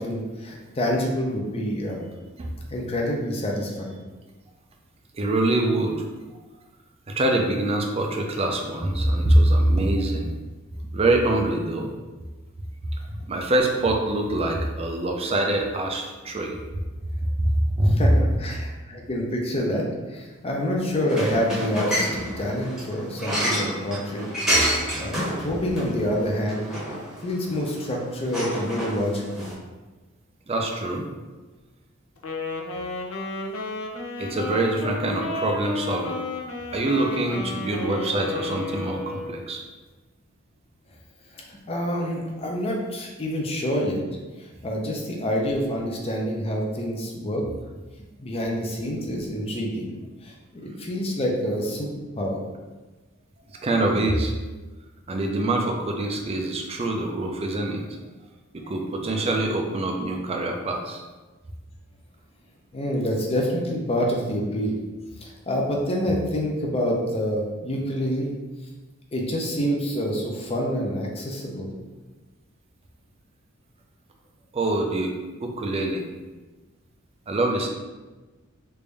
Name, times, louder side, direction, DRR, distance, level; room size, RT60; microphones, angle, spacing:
voice 1, 0.0-2.0 2.7-4.0 17.8-19.8 20.1-24.3 24.9-26.7 27.2-29.5 41.4-44.0 44.6-47.4 48.2-49.9 50.2-51.9 52.2-52.4 59.4-59.5 62.7-64.8 65.2-68.3 69.1-71.7, equal, 30° left, -1 dB, 0.6 m, -27 dB
voice 2, 5.1-6.0 7.1-10.3 10.9-11.9 13.3-16.6 17.4-17.5 17.8-18.1 30.5-31.0 34.2-36.2 36.7-39.6 53.5-54.3 55.1-57.8 58.5-61.0 74.5-75.1 75.4-76.1 77.3-77.7, right 1 dB, 30° right, 2 dB, 0.4 m, -24 dB
sound 1, 21.0-29.5, equal, 5° right, 0.9 m, -29 dB
Wind instrument woodwind instrument, 32.2-39.4, left 3 dB, 75° left, 0.5 m, -32 dB
3.3 x 2.6 x 3.3 m, 1.2 s
head